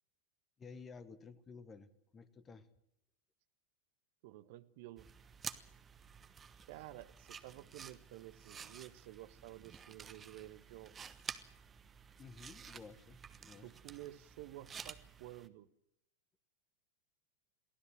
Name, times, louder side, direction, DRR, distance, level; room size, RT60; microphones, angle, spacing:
voice 1, 0.6-2.7 12.2-13.7, left 4 dB, 20° left, 1.4 m, -53 dB
voice 2, 4.2-5.1 6.7-11.1 13.6-15.7, right 15 dB, 50° right, 1.1 m, -52 dB
sound 1, 5.0-15.5, right 7 dB, 20° right, 1.1 m, -51 dB
23.0 x 16.0 x 7.7 m
figure-of-eight pair, 90°, 0 cm